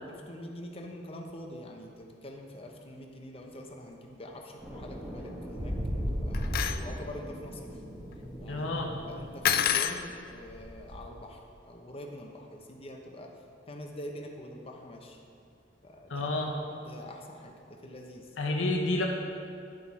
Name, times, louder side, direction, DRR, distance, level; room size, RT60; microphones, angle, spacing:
voice 1, 0.1-5.7 6.1-7.7 8.4-11.4 11.7-13.3 13.7-15.2 15.8-16.3 16.7-17.5 17.8-18.2, left 1 dB, 30° left, 2 dB, 0.8 m, -45 dB
sound 1, 4.6-9.7, equal, ahead, 1.3 m, -43 dB
sound 2, 5.6-7.4 7.7-11.0, equal, 25° right, 1.2 m, -36 dB
sound 3, 6.3-6.8 9.5-10.0, left 10 dB, 50° left, 0.3 m, -27 dB
voice 2, 8.5-8.9 16.1-16.5 18.4-19.1, left 2 dB, 75° left, 1 dB, 0.7 m, -29 dB
10.5 x 6.1 x 4.2 m, 2.5 s
head